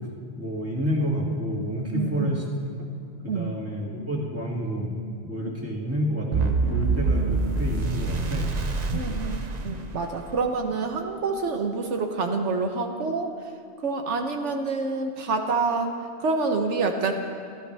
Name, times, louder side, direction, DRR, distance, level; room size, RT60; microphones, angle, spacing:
voice 1, 0.3-2.4 3.2-5.0 5.2-8.5, equal, 10° right, -4 dB, 2.5 m, -29 dB
voice 2, 1.9-2.4 3.3-3.5 8.9-9.3 9.6-13.3 13.8-15.9 16.2-17.1, right 4 dB, 85° right, 4 dB, 1.4 m, -27 dB
sound 1, 6.3-10.4, right 3 dB, 40° right, 0.8 m, -26 dB
28.5 x 13.5 x 3.4 m, 2.3 s
omnidirectional pair, 1.2 m